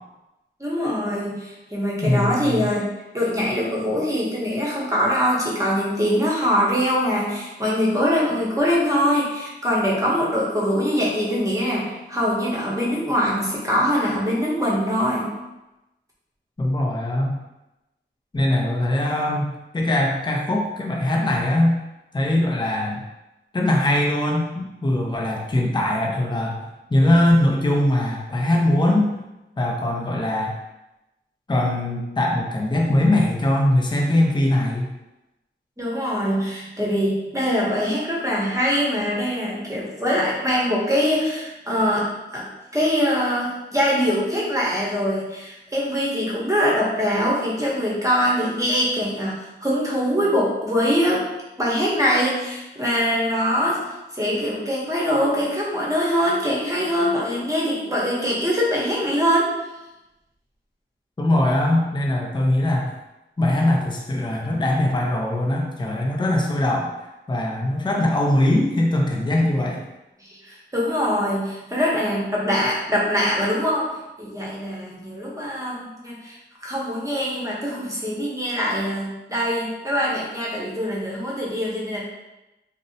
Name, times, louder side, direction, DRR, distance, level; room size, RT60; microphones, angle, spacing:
voice 1, 0.6-2.9 3.1-15.3 35.8-42.5 42.7-51.2 51.6-53.8 54.1-59.5 70.3-73.9 74.2-82.0, equal, 15° right, -5 dB, 0.9 m, -23 dB
voice 2, 2.0-2.7 16.6-17.4 18.3-21.8 22.1-23.0 23.5-26.6 26.9-29.1 29.6-30.5 31.5-34.9 61.2-62.9 63.4-66.9 67.3-69.8, left 1 dB, 25° left, -1 dB, 0.5 m, -21 dB
2.6 x 2.1 x 2.7 m, 0.98 s
cardioid pair, 50°, 20 cm